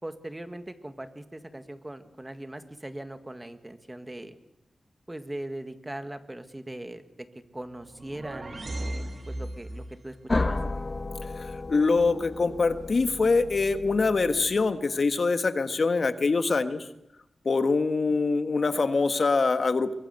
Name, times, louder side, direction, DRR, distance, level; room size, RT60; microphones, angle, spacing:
voice 1, 0.0-4.4 5.1-7.0 7.5-10.6, right 1 dB, 15° right, 9 dB, 2.0 m, -40 dB
sound 1, 7.7-10.0, right 1 dB, 45° right, 3.1 m, -36 dB
sound 2, 10.3-15.0, left 2 dB, 30° left, 1.4 m, -33 dB
voice 2, 11.4-16.9 17.4-19.9, left 4 dB, 55° left, 9 dB, 1.5 m, -24 dB
23.5 x 22.0 x 8.2 m, 0.86 s
wide cardioid pair, 90°, 0 cm